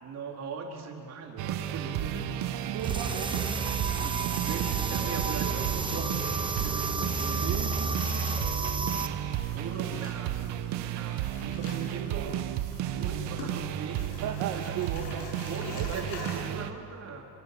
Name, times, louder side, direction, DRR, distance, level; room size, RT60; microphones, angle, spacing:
voice 1, 0.0-2.5 3.7-3.8 4.3-8.1 9.4-11.3 11.6-12.3 12.9-14.1 14.6-14.7 15.5-17.3, right 4 dB, 40° right, 0 dB, 4.3 m, -40 dB
sound 1, 1.4-16.7, right 11 dB, 75° right, 1.5 m, -33 dB
voice 2, 2.7-4.3 7.4-8.2 11.4-12.4 14.2-15.3 15.7-16.6, right 9 dB, 55° right, 2 dB, 2.0 m, -37 dB
sound 2, 2.8-9.1, right 4 dB, 10° right, 1.0 m, -31 dB
sound 3, 6.1-16.4, left 3 dB, 70° left, 7.5 m, -47 dB
29.5 x 25.0 x 7.0 m, 2.7 s
cardioid pair, 150°, 41 cm